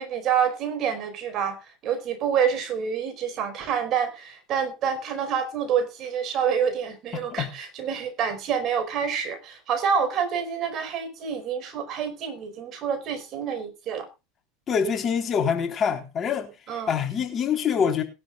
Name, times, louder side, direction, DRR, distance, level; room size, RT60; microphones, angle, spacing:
voice 1, 0.0-1.6 1.8-14.1 16.7-16.9, right 7 dB, 45° right, 5.0 m, -27 dB
voice 2, 7.1-7.5 14.7-16.5 16.9-18.0, left 7 dB, 35° left, 3.6 m, -25 dB
20.5 x 11.5 x 2.4 m
hypercardioid pair, 100°, 0 cm